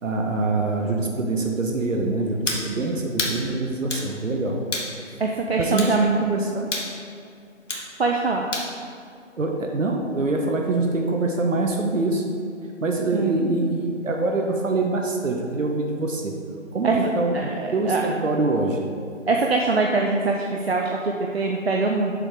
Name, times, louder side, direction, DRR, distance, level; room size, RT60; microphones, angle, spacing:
voice 1, 0.0-4.6 5.1-5.2 5.6-6.7 9.4-12.3 12.8-16.4 16.7-18.8, right 3 dB, 75° right, 2 dB, 0.9 m, -24 dB
sound 1, 2.5-2.7 3.2-3.4 3.9-4.1 4.7-4.9 5.8-6.0 6.7-6.9 7.7-7.9 8.5-8.7, left 2 dB, 70° left, 1.2 m, -28 dB
voice 2, 5.2-6.1 8.0-8.5 13.1-13.4 16.8-18.1 19.3-22.1, right 3 dB, 55° right, 1 dB, 0.5 m, -23 dB
6.8 x 3.6 x 4.6 m, 2.3 s
figure-of-eight pair, 165°, 38 cm